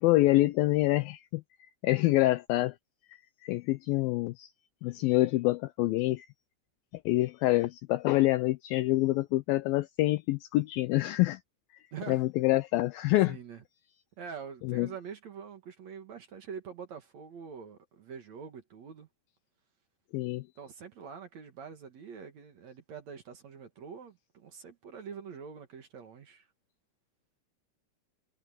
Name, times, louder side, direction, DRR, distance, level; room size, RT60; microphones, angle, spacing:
voice 1, 0.0-1.4 1.8-2.7 3.4-4.5 4.8-6.3 7.1-11.4 12.1-13.4 14.7-14.9 20.1-20.4, left 18 dB, 90° left, 2.1 m, -26 dB
voice 2, 11.9-12.2 13.3-13.6 14.2-19.1 20.6-26.5, right 6 dB, 55° right, 2.4 m, -45 dB
omnidirectional pair, 4.8 m